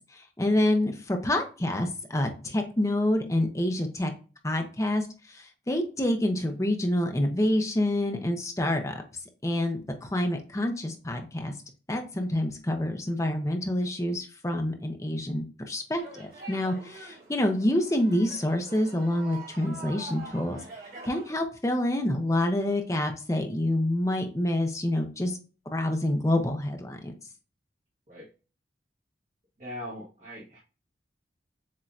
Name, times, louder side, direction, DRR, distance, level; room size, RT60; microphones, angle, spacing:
voice 1, 0.1-4.1 4.4-9.0 9.4-11.5 11.9-20.6 21.0-25.4 25.7-27.1, left 1 dB, 15° left, 4 dB, 0.7 m, -27 dB
sound 1, 16.0-21.4, right 3 dB, 55° right, 2.4 m, -45 dB
voice 2, 29.6-30.6, left 1 dB, 40° right, -6 dB, 1.3 m, -40 dB
7.5 x 2.8 x 2.4 m, 0.35 s
head